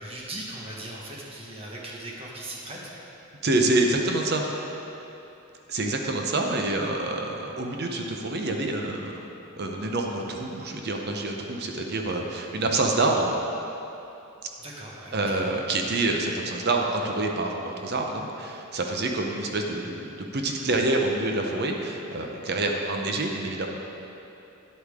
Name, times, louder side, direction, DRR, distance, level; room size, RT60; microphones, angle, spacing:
voice 1, 0.0-3.1 14.6-15.4, right 1 dB, 25° right, -3 dB, 1.3 m, -39 dB
voice 2, 3.4-4.4 5.7-9.1 9.6-13.3 15.1-23.7, right 2 dB, 50° right, 2 dB, 0.7 m, -27 dB
10.0 x 8.2 x 3.6 m, 2.9 s
head